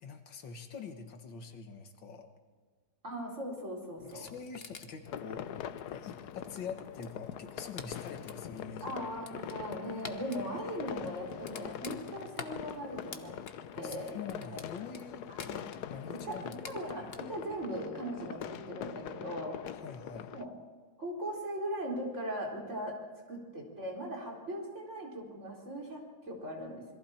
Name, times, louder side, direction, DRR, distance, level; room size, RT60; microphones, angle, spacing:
voice 1, 0.0-2.3 4.0-5.5 5.9-9.0 9.3-9.6 13.8-15.3 15.8-16.6 19.8-20.3, left 5 dB, 85° left, 6 dB, 2.2 m, -45 dB
voice 2, 3.0-4.3 8.8-13.4 13.8-14.6 15.3-15.7 16.1-19.6 20.3-20.5 21.0-23.0 23.3-26.8, equal, 40° right, -2 dB, 4.6 m, -39 dB
sound 1, 4.0-17.2, left 5 dB, 35° left, 1.2 m, -51 dB
sound 2, 5.1-20.4, left 10 dB, 65° left, 1.2 m, -43 dB
27.0 x 22.0 x 4.4 m, 1.5 s
omnidirectional pair, 2.0 m